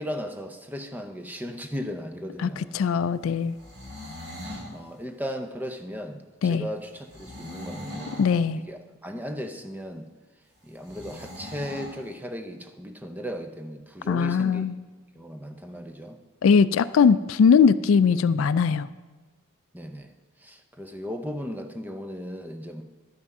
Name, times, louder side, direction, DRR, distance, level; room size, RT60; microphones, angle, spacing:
voice 1, 0.0-2.7 4.4-8.2 8.7-10.1 10.6-14.7 15.1-16.2 19.7-20.1 20.4-22.8, equal, 10° right, 5 dB, 0.6 m, -36 dB
voice 2, 2.4-3.6 6.4-6.7 8.2-8.6 14.1-14.7 16.4-18.9, left 6 dB, 70° left, 15 dB, 0.3 m, -20 dB
sound 1, 3.5-4.7 7.1-8.3 10.8-11.9, left 1 dB, 50° right, 3.1 m, -40 dB
12.0 x 6.0 x 5.4 m, 1.3 s
head